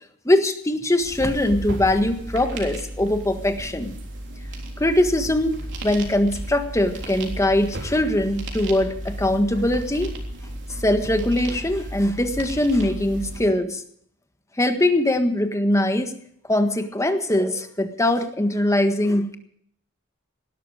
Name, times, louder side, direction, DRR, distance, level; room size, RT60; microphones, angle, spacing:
voice 1, 0.2-3.9 4.8-10.1 10.8-13.8 14.6-16.2 16.5-19.4, left 1 dB, 15° left, 7 dB, 1.5 m, -22 dB
sound 1, 1.0-13.5, right 1 dB, 60° right, 3.5 m, -34 dB
18.0 x 13.0 x 5.0 m, 0.66 s
head